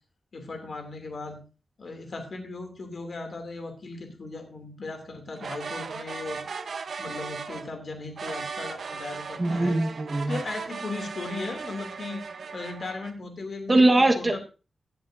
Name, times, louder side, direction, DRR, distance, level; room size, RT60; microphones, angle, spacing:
voice 1, 0.3-1.4 1.8-6.4 7.0-9.8 10.3-12.2 12.5-14.4, left 3 dB, 60° left, 5 dB, 2.8 m, -37 dB
sound 1, 5.4-7.7 8.2-13.1, right 5 dB, 80° right, 1.0 m, -37 dB
voice 2, 9.4-10.4 13.7-14.4, right 2 dB, 25° right, 4 dB, 1.4 m, -21 dB
16.5 x 7.7 x 2.7 m, 0.32 s
wide cardioid pair, 120°, 0 cm